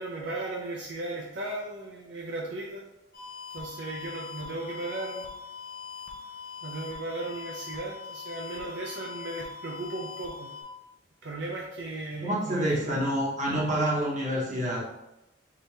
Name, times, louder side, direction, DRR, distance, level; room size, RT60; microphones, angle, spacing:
voice 1, 0.0-2.8 3.5-5.3 6.6-10.5 11.2-13.1, right 2 dB, 65° right, -2 dB, 0.5 m, -36 dB
sound 1, 3.1-10.6, left 6 dB, 45° left, 0.7 m, -42 dB
voice 2, 12.2-14.9, right 1 dB, 40° right, -3 dB, 0.9 m, -27 dB
3.7 x 2.7 x 3.3 m, 0.93 s
head